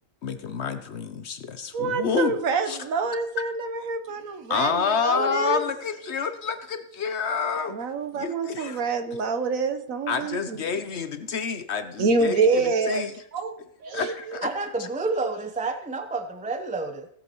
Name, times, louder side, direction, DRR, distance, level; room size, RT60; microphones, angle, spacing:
voice 1, 0.2-2.3 2.7-2.8 4.5-7.8 8.1-8.8 10.1-13.1 13.9-14.5, left 6 dB, 60° left, 10 dB, 0.9 m, -28 dB
voice 2, 1.7-5.6 7.7-10.6 12.0-13.0 13.3-13.5 13.8-14.3, right 4 dB, 70° right, 8 dB, 1.3 m, -26 dB
voice 3, 14.4-17.1, right 3 dB, 10° right, 7 dB, 0.4 m, -29 dB
17.0 x 8.2 x 3.0 m, 0.70 s
omnidirectional pair, 1.5 m